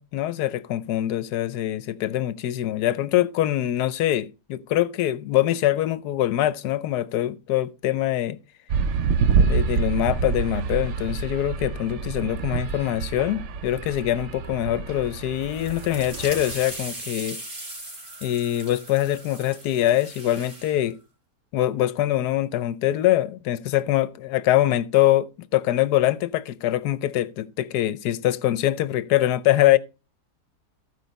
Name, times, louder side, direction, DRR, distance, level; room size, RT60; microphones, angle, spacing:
voice 1, 0.0-8.4 9.5-17.4 18.2-21.0 21.5-29.8, left 13 dB, 80° left, 1.2 m, -23 dB
sound 1, 8.7-16.7, right 5 dB, 60° right, 0.8 m, -27 dB
sound 2, 15.4-20.8, right 1 dB, 40° right, 3.1 m, -39 dB
14.0 x 5.0 x 4.0 m
omnidirectional pair, 1.7 m